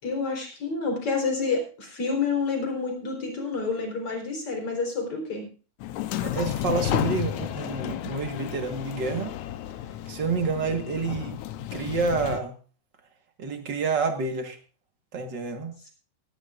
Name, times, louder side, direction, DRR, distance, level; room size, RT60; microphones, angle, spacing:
voice 1, 0.0-5.5, left 4 dB, 40° left, 2 dB, 4.8 m, -28 dB
sound 1, 5.8-12.4, left 11 dB, 75° left, 1.8 m, -32 dB
voice 2, 6.2-9.3 10.1-11.4 11.7-12.6 13.4-14.6 15.1-15.7, right 4 dB, 45° right, 5 dB, 1.4 m, -28 dB
17.5 x 16.5 x 2.5 m, 0.37 s
omnidirectional pair, 4.1 m